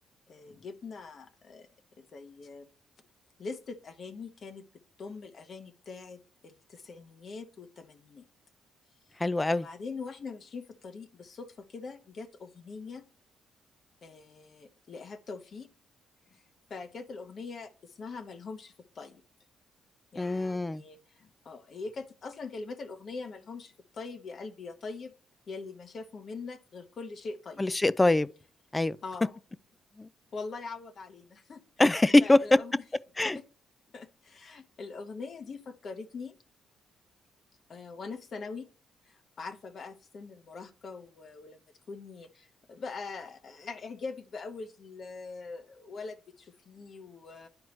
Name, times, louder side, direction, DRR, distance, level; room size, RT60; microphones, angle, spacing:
voice 1, 0.3-1.7 2.0-2.7 3.4-4.6 5.0-8.2 9.5-13.0 14.0-15.7 16.3-16.4 16.7-19.2 20.1-25.1 25.5-27.7 29.0-29.4 30.3-31.6 32.2-32.8 33.2-33.4 33.9-36.3 37.7-38.7 39.0-41.6 41.9-47.5, left 4 dB, 50° left, 0.9 m, -42 dB
voice 2, 9.2-9.6 20.2-20.8 27.6-28.3 28.7-29.0 30.0-30.1 31.8-32.4 33.2-33.4, left 2 dB, 15° left, 0.4 m, -23 dB
10.5 x 4.6 x 3.1 m
cardioid pair, 90°, 0 cm